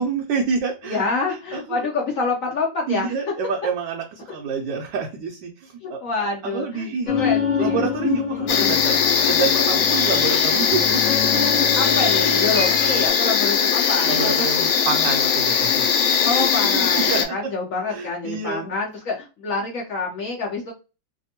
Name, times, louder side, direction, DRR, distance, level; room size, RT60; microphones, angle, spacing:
voice 1, 0.0-1.0 1.3-1.9 2.9-7.3 7.6-11.0 11.6-11.7 14.1-15.9 16.7-17.2 17.9-18.7, right 5 dB, 75° right, 2 dB, 1.2 m, -28 dB
voice 2, 0.8-3.1 5.8-7.9 8.3-8.8 11.7-14.7 16.2-20.7, left 3 dB, 65° left, 0 dB, 0.8 m, -27 dB
sound 1, 7.1-13.1, left 6 dB, 35° left, 0.8 m, -26 dB
sound 2, 8.5-17.2, left 7 dB, 90° left, 1.4 m, -20 dB
3.3 x 2.1 x 2.7 m, 0.29 s
omnidirectional pair, 2.1 m